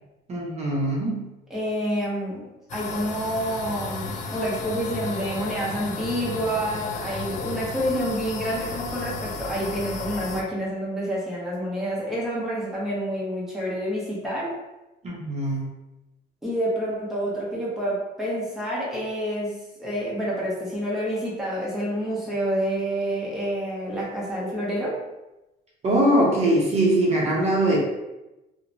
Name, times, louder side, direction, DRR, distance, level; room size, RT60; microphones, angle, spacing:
voice 1, 0.3-1.2 15.0-15.6 25.8-27.8, right 1 dB, 40° right, -3 dB, 0.7 m, -21 dB
voice 2, 1.5-14.6 16.4-25.0, equal, ahead, -6 dB, 0.8 m, -28 dB
sound 1, 2.7-10.4, left 4 dB, 45° left, 0.4 m, -34 dB
2.9 x 2.1 x 2.6 m, 0.99 s
cardioid pair, 110°, 17 cm